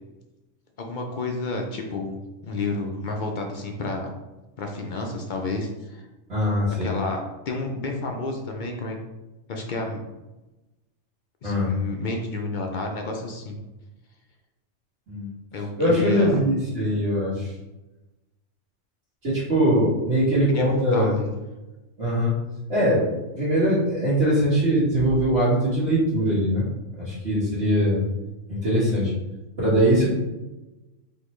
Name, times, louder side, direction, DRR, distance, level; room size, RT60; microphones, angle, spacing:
voice 1, 0.8-2.2 2.4-4.1 4.6-6.1 6.8-7.2 7.5-9.0 9.5-10.0 11.4-13.6 15.5-16.4 20.5-21.3, left 2 dB, 60° left, 2 dB, 0.5 m, -30 dB
voice 2, 6.3-6.9 11.4-11.7 15.1-15.3 15.8-17.5 19.2-21.1 22.0-22.3 22.7-23.1 23.4-26.6 27.0-28.0 28.5-29.1 29.6-30.1, equal, 65° right, -11 dB, 1.5 m, -21 dB
4.2 x 2.9 x 3.1 m, 1.1 s
omnidirectional pair, 1.3 m